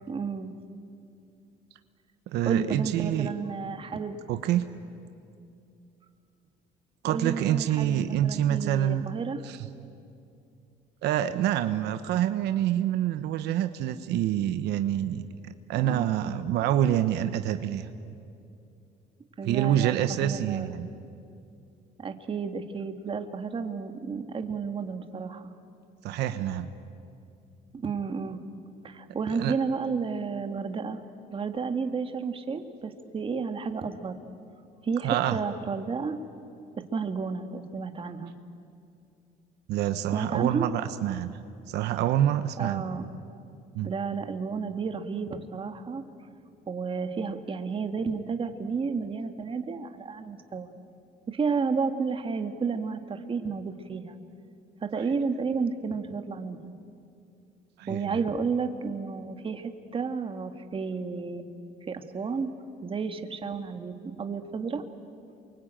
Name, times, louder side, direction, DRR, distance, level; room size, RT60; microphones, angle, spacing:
voice 1, 0.1-0.5 2.4-4.2 7.0-9.4 15.7-16.4 19.4-20.7 22.0-25.5 27.7-28.4 28.8-31.0 31.3-34.2 34.8-36.2 36.9-38.3 40.1-40.7 42.6-43.1 43.8-46.0 46.7-50.7 51.3-54.2 54.8-56.7 57.9-61.5 61.8-62.5 62.8-64.8, right 5 dB, 30° right, 7 dB, 1.9 m, -32 dB
voice 2, 2.3-3.3 4.3-4.7 7.0-9.1 9.4-9.7 11.0-17.9 19.4-20.9 26.0-26.7 29.4-29.5 35.0-35.4 39.7-41.4 41.7-42.8 43.7-43.9 57.8-58.1, right 11 dB, 80° right, 9 dB, 1.1 m, -27 dB
28.0 x 23.5 x 9.0 m, 2.5 s
cardioid pair, 110°, 17 cm